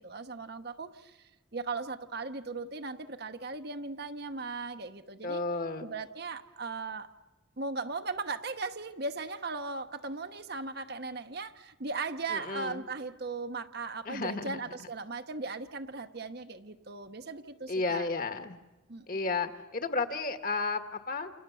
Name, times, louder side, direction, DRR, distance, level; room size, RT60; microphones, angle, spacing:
voice 1, 0.0-5.4 5.8-7.1 7.6-18.1 18.9-19.1, right 3 dB, 50° right, 8 dB, 1.0 m, -38 dB
voice 2, 5.2-5.8 12.3-12.8 14.0-14.6 17.7-18.6 19.1-21.3, left 3 dB, 45° left, 8 dB, 1.5 m, -33 dB
29.0 x 28.0 x 7.1 m, 1.1 s
head